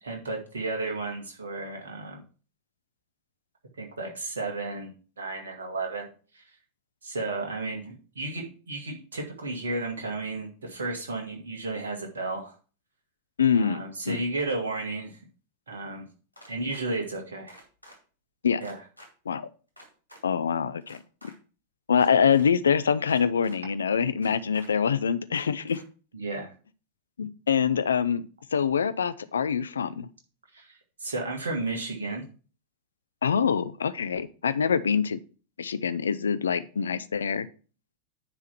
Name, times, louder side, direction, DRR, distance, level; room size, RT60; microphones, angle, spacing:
voice 1, 0.0-2.2 3.8-4.9 5.2-6.4 7.0-12.5 13.5-15.2 15.7-16.1 16.5-17.6 18.6-18.8 26.1-26.5 30.5-32.3, right 2 dB, 70° right, 1 dB, 2.0 m, -33 dB
voice 2, 13.4-14.2 18.4-18.6 19.3-19.5 20.2-21.3 21.9-25.8 27.2-30.1 33.2-35.2 35.6-37.5, left 7 dB, 70° left, 14 dB, 0.5 m, -25 dB
sound 1, 16.3-16.8 17.5-18.0 18.6-19.1 19.8-20.2 20.8-21.3 21.9-22.5 23.1-23.6 24.2-24.7 25.3-25.8, equal, 90° right, 2.3 m, -50 dB
9.8 x 3.5 x 5.8 m, 0.37 s
figure-of-eight pair, 90°, 0 cm